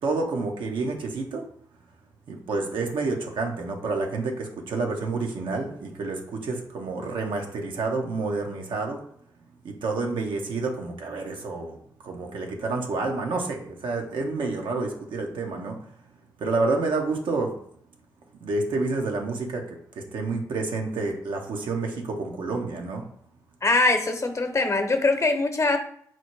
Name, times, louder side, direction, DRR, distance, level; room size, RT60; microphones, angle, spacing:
voice 1, 0.0-1.5 2.3-9.0 9.6-11.8 12.0-15.8 16.4-17.6 18.4-23.0, right 3 dB, 75° right, 2 dB, 0.8 m, -29 dB
voice 2, 23.6-25.8, left 3 dB, 40° left, 6 dB, 0.8 m, -22 dB
4.4 x 2.1 x 4.6 m, 0.65 s
supercardioid pair, 45°, 8 cm